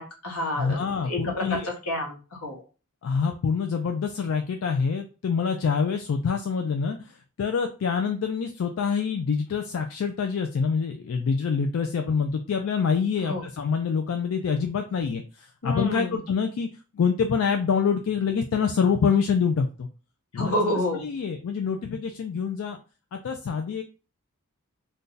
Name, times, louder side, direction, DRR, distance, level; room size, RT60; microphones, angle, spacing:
voice 1, 0.0-2.6 13.2-13.4 15.6-16.2 20.3-21.1, left 1 dB, 85° left, 0 dB, 1.1 m, -29 dB
voice 2, 0.6-1.7 3.0-16.7 16.9-19.9 20.3-20.5 20.9-22.8 23.1-23.8, left 6 dB, 65° left, 5 dB, 0.3 m, -26 dB
2.6 x 2.3 x 3.8 m, 0.34 s
head